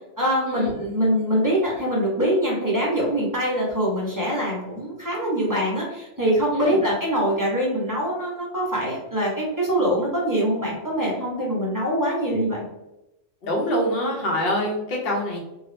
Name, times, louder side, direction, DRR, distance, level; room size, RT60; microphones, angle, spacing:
voice 1, 0.2-12.6, equal, 20° right, -5 dB, 0.7 m, -24 dB
voice 2, 13.4-15.4, equal, 55° left, -2 dB, 1.0 m, -25 dB
2.7 x 2.5 x 3.2 m, 0.94 s
omnidirectional pair, 1.3 m